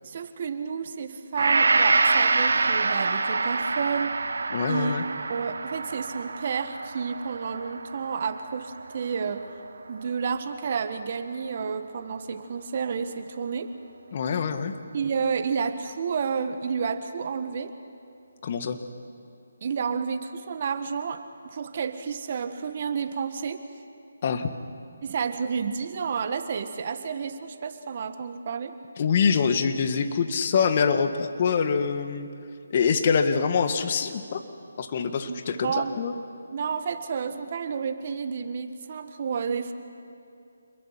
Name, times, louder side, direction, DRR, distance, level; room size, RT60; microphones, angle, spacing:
voice 1, 0.0-4.1 4.7-5.0 5.3-9.4 9.9-13.7 14.9-17.7 19.6-23.6 25.0-28.7 35.3-36.0 36.5-39.7, right 6 dB, 45° right, 9 dB, 1.5 m, -30 dB
Gong, 1.4-9.7 10.1-10.2, right 3 dB, 70° right, 1.3 m, -26 dB
voice 2, 4.5-5.0 14.1-14.7 18.4-18.8 24.2-24.5 29.0-32.3 32.7-34.4 34.8-36.1, left 6 dB, 40° left, 8 dB, 1.6 m, -25 dB
27.5 x 21.5 x 5.9 m, 2.6 s
figure-of-eight pair, 155°, 0 cm